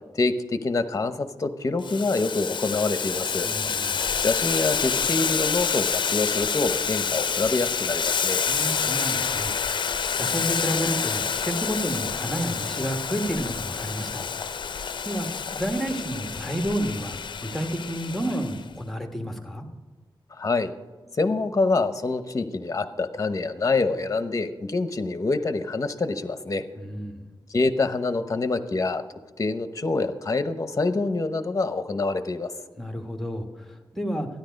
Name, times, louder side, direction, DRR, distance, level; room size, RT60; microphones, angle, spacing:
voice 1, 0.1-3.5 4.2-8.4 20.3-20.7 21.1-26.6 27.5-29.0 29.4-32.5, left 3 dB, 40° left, 10 dB, 0.9 m, -26 dB
Boiling, 1.8-18.6, left 6 dB, 70° left, 0.5 m, -28 dB
voice 2, 3.4-4.0 8.5-9.5 10.1-14.3 14.8-15.3 15.5-19.7 26.8-27.2 32.8-34.3, equal, 5° left, 4 dB, 1.5 m, -30 dB
13.0 x 10.5 x 5.2 m, 1.3 s
wide cardioid pair, 105°, 8 cm